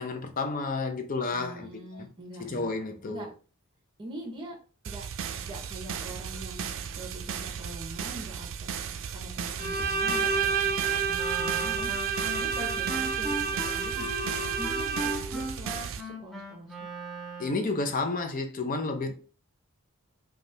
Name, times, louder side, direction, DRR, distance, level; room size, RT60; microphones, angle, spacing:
voice 1, 0.0-1.7 2.0-2.1 2.4-3.3 17.4-19.1, left 3 dB, 40° left, 0.6 m, -31 dB
voice 2, 1.3-2.7 3.1-3.3 4.0-4.6 4.8-8.7 9.1-11.9 12.3-16.9 19.1-19.2, right 1 dB, 20° right, 1.1 m, -43 dB
sound 1, 4.8-16.0, right 7 dB, 60° right, 0.4 m, -36 dB
Bowed string instrument, 9.6-15.4, right 6 dB, 45° right, 1.0 m, -29 dB
Wind instrument woodwind instrument, 11.1-17.8, right 1 dB, ahead, 0.7 m, -38 dB
5.1 x 2.4 x 2.7 m
head